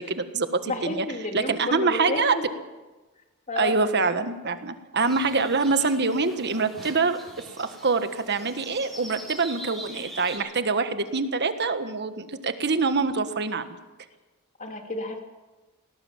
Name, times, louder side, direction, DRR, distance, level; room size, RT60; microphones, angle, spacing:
voice 1, 0.0-1.0 1.3-2.4 3.5-7.2 7.6-13.8, right 4 dB, 50° right, 10 dB, 1.4 m, -25 dB
voice 2, 0.7-2.4 3.5-3.8 14.6-15.2, left 2 dB, 35° left, 3 dB, 2.8 m, -31 dB
sound 1, 5.0-10.4, right 1 dB, ahead, 5.9 m, -43 dB
20.0 x 18.5 x 7.3 m, 1.2 s
head